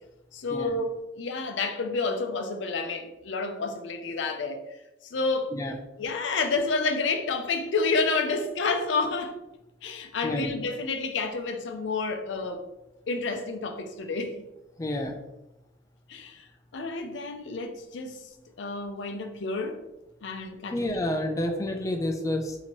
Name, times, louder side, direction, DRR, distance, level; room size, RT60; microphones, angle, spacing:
voice 1, 0.3-4.6 5.1-5.5 6.0-9.3 9.8-12.6 13.1-14.4 16.1-16.4 16.7-18.2 18.6-19.8 20.2-20.9, left 3 dB, 85° left, 0.5 m, -29 dB
voice 2, 10.2-10.6 14.8-15.2 20.7-22.6, left 1 dB, 20° left, 0.3 m, -29 dB
4.3 x 2.8 x 2.9 m
head